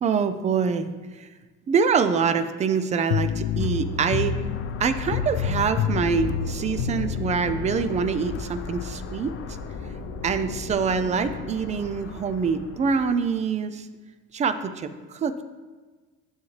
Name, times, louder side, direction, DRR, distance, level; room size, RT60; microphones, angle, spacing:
voice 1, 0.0-1.3 1.7-4.4 4.8-9.4 10.2-13.9 14.3-15.4, right 6 dB, 25° right, 10 dB, 0.3 m, -25 dB
sound 1, 3.1-8.4, left 8 dB, 90° left, 0.6 m, -28 dB
sound 2, 3.4-13.2, left 4 dB, 40° left, 0.6 m, -37 dB
9.4 x 7.2 x 3.2 m, 1.4 s
cardioid pair, 155°, 32 cm